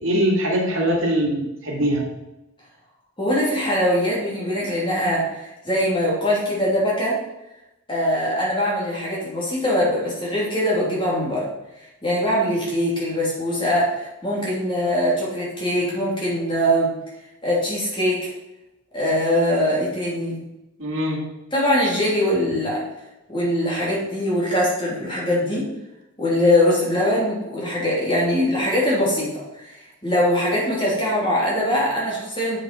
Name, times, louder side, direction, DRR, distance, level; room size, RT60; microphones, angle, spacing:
voice 1, 0.0-2.1 20.8-21.2, equal, 65° right, -1 dB, 2.3 m, -22 dB
voice 2, 3.2-7.2 7.9-11.5 12.0-16.9 17.4-18.3 18.9-20.4 21.5-22.8 23.3-25.7 26.2-29.7 30.0-32.6, left 1 dB, 20° left, -5 dB, 3.3 m, -22 dB
7.6 x 7.1 x 5.4 m, 0.93 s
head